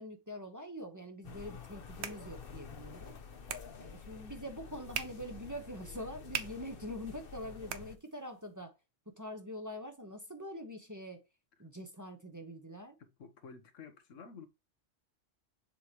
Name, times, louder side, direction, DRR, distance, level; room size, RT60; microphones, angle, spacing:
voice 1, 0.0-3.2 3.8-8.8 9.1-11.2 11.6-13.0, equal, 15° right, 0.9 m, -44 dB
Heathrow Bus Station, 1.2-8.0, left 6 dB, 50° left, 1.0 m, -49 dB
sound 1, 1.5-8.5, right 8 dB, 65° right, 0.9 m, -46 dB
voice 2, 13.0-14.5, left 5 dB, 85° left, 1.4 m, -51 dB
7.3 x 4.8 x 2.9 m
omnidirectional pair, 1.3 m